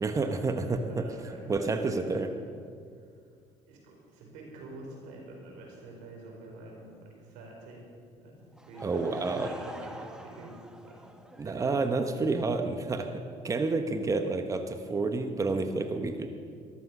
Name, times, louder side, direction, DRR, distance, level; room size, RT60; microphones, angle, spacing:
voice 1, 0.0-1.0 1.5-2.3 8.8-9.5 11.4-16.3, right 3 dB, 25° right, 7 dB, 1.1 m, -29 dB
voice 2, 0.7-2.3 3.7-7.8 8.2-9.0 9.3-10.5 10.8-12.1, right 2 dB, 85° right, -1 dB, 4.7 m, -47 dB
Laughter / Crowd, 8.5-12.1, right 1 dB, 5° right, 1.4 m, -46 dB
14.5 x 12.5 x 6.1 m, 2.2 s
supercardioid pair, 90°, 13 cm